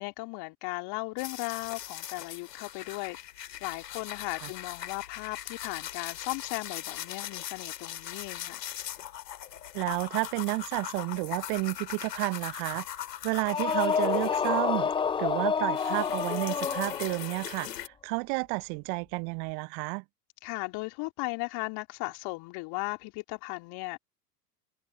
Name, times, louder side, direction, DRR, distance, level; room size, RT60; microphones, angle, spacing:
voice 1, 0.0-3.2 3.6-8.6 20.4-24.0, left 25 dB, 50° left, 3.2 m, -36 dB
sound 1, 1.2-14.9 15.3-17.9, left 11 dB, 75° left, 2.6 m, -40 dB
voice 2, 9.7-12.8 13.2-14.9 15.2-20.0, right 34 dB, 50° right, 0.9 m, -31 dB
sound 2, 13.4-17.4, left 6 dB, 10° left, 0.5 m, -29 dB
figure-of-eight pair, 80°, 49 cm